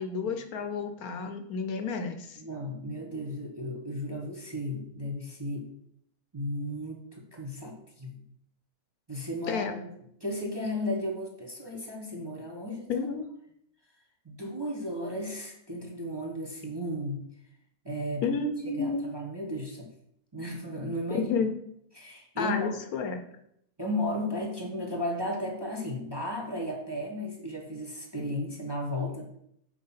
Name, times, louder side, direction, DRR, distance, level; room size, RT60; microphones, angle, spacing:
voice 1, 0.0-2.4 9.5-9.8 12.9-13.3 18.2-19.1 21.1-21.5 22.4-23.2, left 5 dB, 70° left, 6 dB, 1.3 m, -31 dB
voice 2, 2.4-5.7 6.3-8.2 9.1-9.9 10.2-12.9 14.2-17.2 17.8-18.3 18.7-19.9 20.3-21.3 22.0-22.8 23.8-29.3, left 1 dB, 20° right, 0 dB, 1.0 m, -34 dB
6.4 x 4.3 x 5.6 m, 0.73 s
omnidirectional pair, 1.6 m